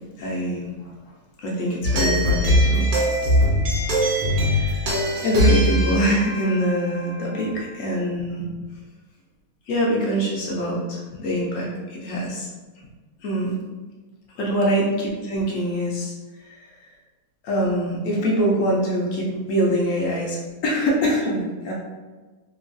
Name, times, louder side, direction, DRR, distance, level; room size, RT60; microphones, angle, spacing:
voice 1, 0.2-0.9 1.4-2.9 4.4-8.5 9.7-12.5 13.2-13.6 14.4-16.1 16.4-16.9 17.4-21.7, equal, 70° left, -3 dB, 0.8 m, -24 dB
sound 1, 1.8-7.6, equal, 80° right, 1.2 m, -21 dB
3.0 x 2.3 x 2.5 m, 1.3 s
omnidirectional pair, 1.8 m